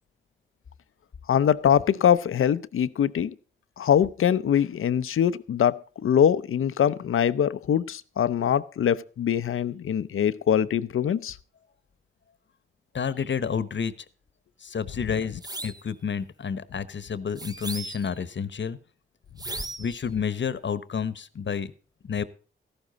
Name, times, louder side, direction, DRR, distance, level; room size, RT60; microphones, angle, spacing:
voice 1, 1.3-3.3 3.8-11.4, left 9 dB, 80° left, 0.7 m, -23 dB
voice 2, 12.9-13.9 14.6-18.8 19.8-21.7 22.0-22.2, left 6 dB, 60° left, 1.1 m, -30 dB
sound 1, 15.4-15.9 17.4-18.2 19.4-20.0, right 2 dB, 20° right, 0.8 m, -36 dB
14.0 x 12.0 x 4.0 m
cardioid pair, 45°, 21 cm